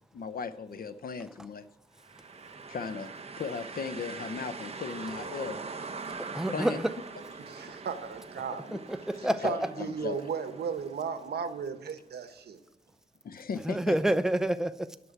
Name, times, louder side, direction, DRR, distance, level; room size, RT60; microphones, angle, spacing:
voice 1, 0.1-1.7 2.7-5.6 6.5-6.8 8.7-8.8 9.2-10.2 13.2-14.0, left 5 dB, 65° left, 12 dB, 0.7 m, -37 dB
sound 1, 2.0-11.8, right 4 dB, 40° right, 0.9 m, -43 dB
voice 2, 6.3-6.9 8.9-9.7 13.7-14.9, right 1 dB, 5° right, 11 dB, 0.5 m, -28 dB
voice 3, 7.5-8.6 9.4-12.6, right 6 dB, 80° right, 9 dB, 1.1 m, -35 dB
11.0 x 6.2 x 8.0 m, 0.87 s
wide cardioid pair, 120°, 17 cm